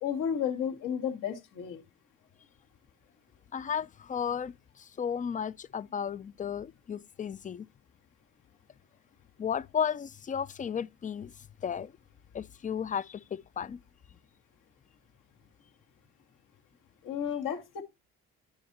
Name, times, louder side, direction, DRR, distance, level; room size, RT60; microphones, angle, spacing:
voice 1, 0.0-1.8 17.0-17.8, left 8 dB, 65° left, 2.3 m, -32 dB
voice 2, 3.5-7.7 9.4-11.3 11.6-11.9 12.3-13.8, left 7 dB, 25° left, 0.4 m, -34 dB
9.7 x 4.2 x 4.2 m
supercardioid pair, 80°, 33 cm